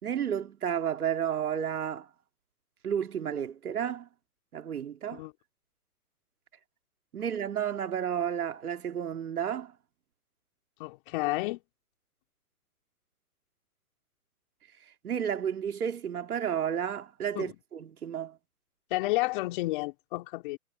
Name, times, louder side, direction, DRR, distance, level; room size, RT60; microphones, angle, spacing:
voice 1, 0.0-2.1 2.8-4.1 4.5-5.2 7.1-9.7 15.0-18.4, right 9 dB, 70° right, 2.7 m, -32 dB
voice 2, 10.8-11.6 17.3-17.5 18.9-20.6, left 21 dB, 35° left, 2.8 m, -31 dB
hypercardioid pair, 150°, 45 cm